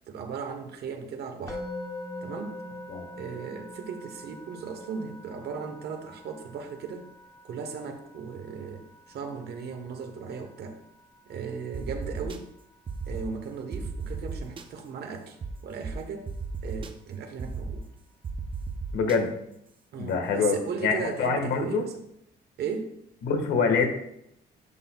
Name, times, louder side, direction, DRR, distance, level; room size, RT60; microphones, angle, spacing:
voice 1, 0.1-1.6 2.2-2.6 3.2-7.1 7.4-10.8 11.3-12.5 13.1-15.4 15.6-16.3 16.6-17.9 19.9-21.9 22.6-22.9, right 5 dB, 65° right, 5 dB, 1.1 m, -36 dB
Musical instrument, 1.5-12.6, left 1 dB, 20° left, 0.9 m, -44 dB
sound 1, 11.7-12.4 12.9-13.2 13.7-14.6 15.4-15.5 15.8-15.9 16.3-16.9 17.4-17.8 18.2-19.2, right 6 dB, 30° right, 0.5 m, -35 dB
voice 2, 18.9-19.3 20.0-20.5 20.8-21.8 23.2-23.9, left 5 dB, 90° left, 4 dB, 1.4 m, -25 dB
11.0 x 6.1 x 2.2 m, 0.78 s
cardioid pair, 155°, 18 cm